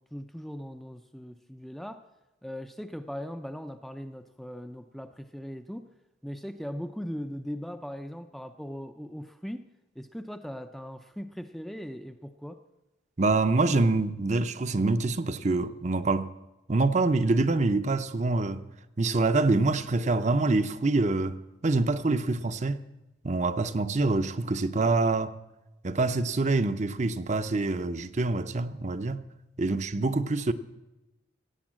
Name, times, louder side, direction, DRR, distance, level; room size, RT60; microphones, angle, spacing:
voice 1, 0.0-2.1 2.4-5.9 6.2-9.7 10.0-12.6 29.6-29.8, equal, ahead, 0.5 m, -39 dB
voice 2, 13.2-16.3 16.7-18.6 19.0-21.4 21.6-22.8 23.2-25.3 25.8-29.2 29.6-30.5, right 3 dB, 40° right, 0.6 m, -25 dB
16.5 x 8.6 x 7.4 m
head